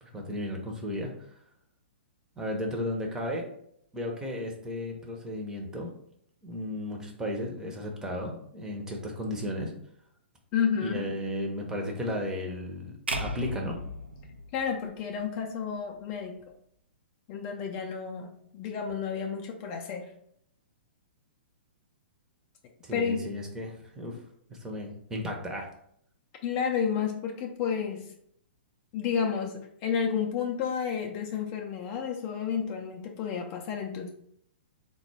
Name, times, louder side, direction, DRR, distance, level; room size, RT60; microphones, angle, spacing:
voice 1, 0.0-1.1 2.4-3.5 3.9-5.9 6.4-9.7 10.8-12.9 13.2-13.8 22.8-24.2 24.5-25.7, left 1 dB, 10° right, 0 dB, 0.6 m, -34 dB
voice 2, 10.5-11.1 14.5-16.4 17.3-20.1 22.9-23.3 26.4-28.1 28.9-34.1, left 7 dB, 35° left, 2 dB, 0.4 m, -31 dB
sound 1, 13.1-15.3, right 1 dB, 80° right, 0.4 m, -36 dB
3.7 x 2.2 x 3.2 m, 0.69 s
figure-of-eight pair, 115°, 6 cm